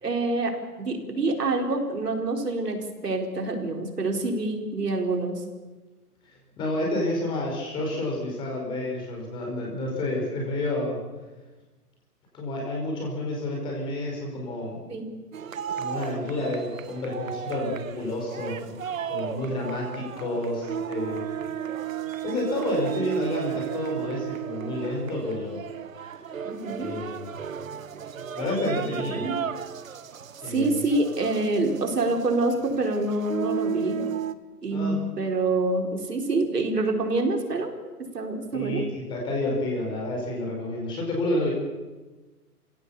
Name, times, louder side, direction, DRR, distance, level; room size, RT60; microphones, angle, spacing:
voice 1, 0.0-0.5 0.8-5.3 14.9-15.1 26.4-26.9 28.6-28.7 29.1-29.4 30.5-34.0 34.6-37.7 38.1-38.8, right 2 dB, 85° right, 3 dB, 4.7 m, -26 dB
voice 2, 6.6-11.0 12.3-14.9 15.7-18.8 19.1-21.3 22.2-25.6 26.8-27.4 28.3-29.3 30.4-30.8 34.7-35.1 38.5-41.5, left 1 dB, 10° left, -1 dB, 4.6 m, -30 dB
sound 1, 15.3-34.3, right 8 dB, 55° right, 1.4 m, -34 dB
29.5 x 16.5 x 7.0 m, 1.2 s
hypercardioid pair, 170°, 46 cm